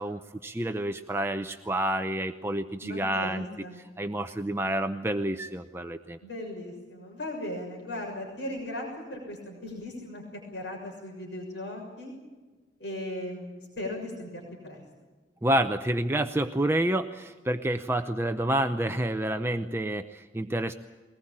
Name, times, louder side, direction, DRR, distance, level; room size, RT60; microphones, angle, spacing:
voice 1, 0.0-3.4 4.0-6.2 15.4-20.7, right 1 dB, 15° right, 7 dB, 0.7 m, -29 dB
voice 2, 2.8-3.7 6.2-12.1 12.8-14.8, left 1 dB, 75° left, 0 dB, 6.7 m, -37 dB
22.0 x 19.5 x 8.8 m, 1.3 s
head